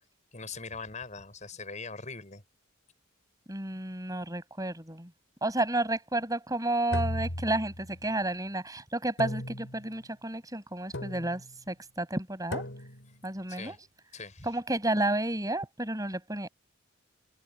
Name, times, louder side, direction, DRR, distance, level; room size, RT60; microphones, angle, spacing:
voice 1, 0.3-2.4 13.1-13.2 13.5-13.8 14.1-14.5, left 4 dB, 35° left, 6.1 m, -41 dB
voice 2, 3.5-5.1 5.4-11.4 11.7-12.6 13.2-13.8 14.4-16.5, right 2 dB, 20° right, 7.2 m, -31 dB
sound 1, 6.9-8.1 9.2-10.0 10.9-11.6 12.5-13.2, left 1 dB, 75° left, 4.0 m, -36 dB
head